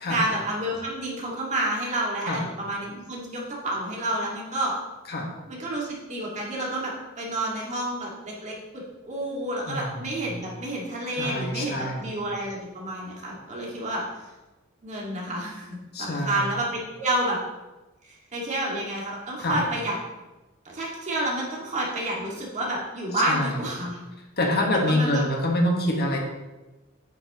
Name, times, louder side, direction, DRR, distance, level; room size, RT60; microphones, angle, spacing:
voice 1, 0.1-4.8 5.5-14.0 14.8-17.4 18.3-20.0 20.7-24.0 24.6-25.2, right 1 dB, 35° right, -3 dB, 1.9 m, -29 dB
voice 2, 9.7-10.4 11.2-12.1 15.9-16.5 19.4-19.6 23.2-23.6 24.4-26.2, left 1 dB, 50° left, 1 dB, 1.4 m, -26 dB
8.9 x 6.9 x 3.0 m, 1.1 s
head